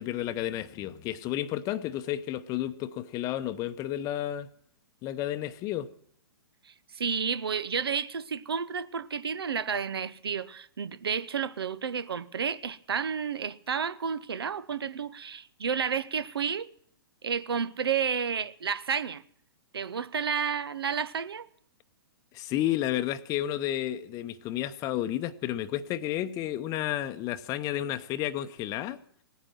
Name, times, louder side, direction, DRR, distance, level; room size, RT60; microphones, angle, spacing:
voice 1, 0.0-4.5 5.0-5.9 22.3-29.0, left 12 dB, 25° left, 0.8 m, -31 dB
voice 2, 6.7-16.7 17.2-19.2 19.7-21.5, right 6 dB, 70° right, 0.8 m, -31 dB
17.5 x 9.8 x 7.3 m
figure-of-eight pair, 115°, 13 cm